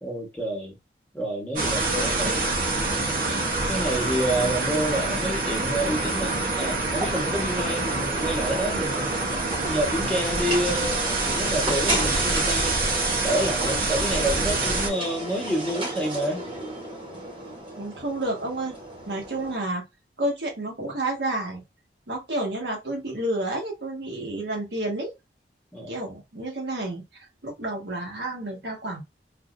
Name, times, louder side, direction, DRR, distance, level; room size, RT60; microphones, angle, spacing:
voice 1, 0.0-0.8 1.1-2.6 2.9-3.2 3.7-9.2 9.7-11.0 11.3-12.7 13.2-16.4 25.7-25.9, right 1 dB, 5° left, 1.2 m, -28 dB
sound 1, 1.6-14.9, right 2 dB, 50° right, 0.9 m, -26 dB
voice 2, 1.7-2.4 17.8-18.7 19.1-19.8 20.2-21.6 22.1-25.1 25.9-29.0, right 1 dB, 75° right, 1.5 m, -30 dB
sound 2, 6.9-19.6, right 1 dB, 30° right, 1.2 m, -34 dB
4.1 x 2.6 x 2.5 m
head